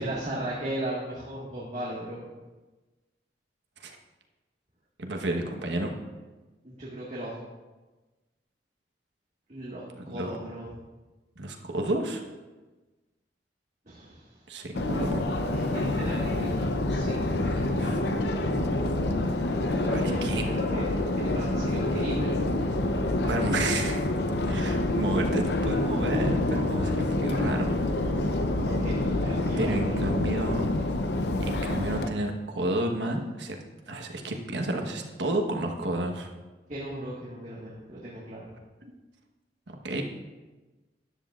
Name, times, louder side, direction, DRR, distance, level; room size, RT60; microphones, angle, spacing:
voice 1, 0.0-2.3 6.6-7.4 9.5-10.7 13.9-14.4 15.5-16.6 16.9-18.7 19.8-20.9 21.2-22.4 28.4-30.1 36.7-38.5, right 1 dB, 40° right, -6 dB, 1.7 m, -37 dB
voice 2, 5.0-5.9 10.0-10.3 11.4-12.2 14.5-15.2 17.8-18.0 19.9-20.5 23.2-24.1 24.5-27.8 29.6-30.7 31.4-33.6 33.9-36.3 38.8-38.9 39.7-40.0, right 1 dB, 90° right, 2 dB, 1.2 m, -31 dB
Subway metro underground, 14.8-32.1, left 2 dB, 70° left, 0.7 m, -27 dB
13.0 x 10.5 x 2.5 m, 1.2 s
head